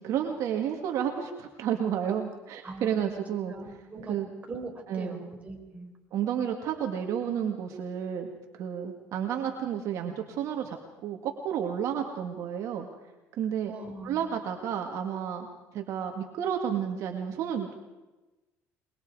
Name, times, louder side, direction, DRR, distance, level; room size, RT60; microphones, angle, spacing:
voice 1, 0.0-3.5 4.1-4.3 4.9-5.2 6.1-8.3 8.6-10.8 11.0-12.9 13.4-13.7 14.0-15.5 15.7-17.7, right 8 dB, 65° right, 4 dB, 2.0 m, -31 dB
voice 2, 2.6-3.2 3.5-4.2 4.5-5.9 13.7-14.2, right 2 dB, 25° right, 1 dB, 5.0 m, -41 dB
24.0 x 22.5 x 4.8 m, 1.1 s
cardioid pair, 105°, 6 cm